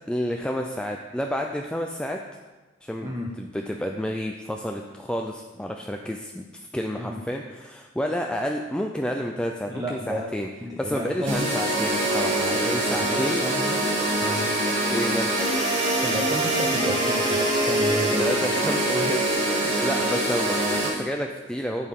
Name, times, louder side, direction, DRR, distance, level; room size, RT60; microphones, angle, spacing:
voice 1, 0.1-2.2 2.8-10.5 10.8-13.4 14.9-15.3 18.2-21.9, equal, 5° left, 2 dB, 0.5 m, -30 dB
voice 2, 9.7-10.3 10.6-11.5 12.5-12.6 12.9-14.5 16.0-18.3 18.6-18.7, equal, 20° right, -1 dB, 0.9 m, -32 dB
sound 1, 11.3-20.9, right 1 dB, 85° right, 3.3 m, -24 dB
11.0 x 8.2 x 3.7 m, 1.2 s
head